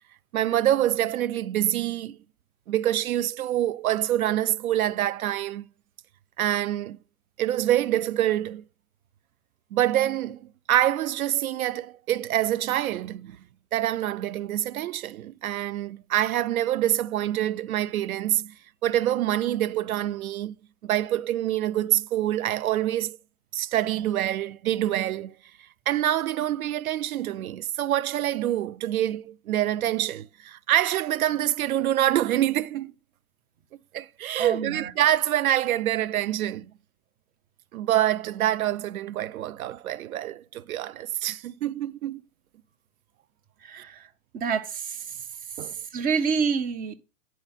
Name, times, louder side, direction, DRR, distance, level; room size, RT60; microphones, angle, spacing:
voice 1, 0.3-2.2 2.7-5.7 6.4-7.0 7.4-8.6 9.7-13.4 13.7-18.5 18.8-20.6 20.8-23.2 23.5-25.4 25.9-32.9 33.9-36.7 37.7-42.2 43.7-43.8 45.6-45.7, right 12 dB, 90° right, 0.6 m, -26 dB
voice 2, 34.4-34.9 43.7-43.9 44.3-44.8 45.9-46.9, right 5 dB, 20° right, 0.7 m, -27 dB
9.9 x 4.7 x 4.0 m
hypercardioid pair, 135°, 41 cm